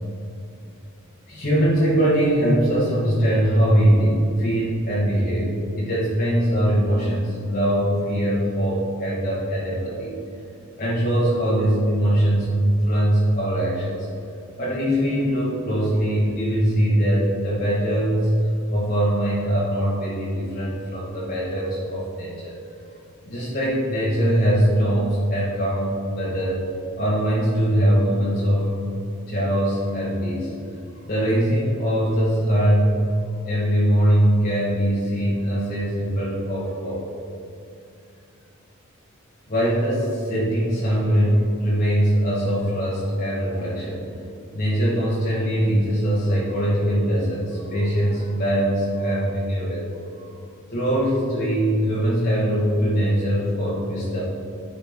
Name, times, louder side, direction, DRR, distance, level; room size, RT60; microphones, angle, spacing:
voice 1, 1.3-5.5 5.8-10.2 10.8-14.1 14.6-18.3 18.7-22.6 23.2-26.6 27.0-28.8 29.3-30.5 30.9-32.9 33.4-37.0 39.5-44.0 44.3-50.2 50.7-54.2, equal, 45° left, -8 dB, 1.4 m, -22 dB
9.8 x 5.3 x 3.6 m, 2.6 s
head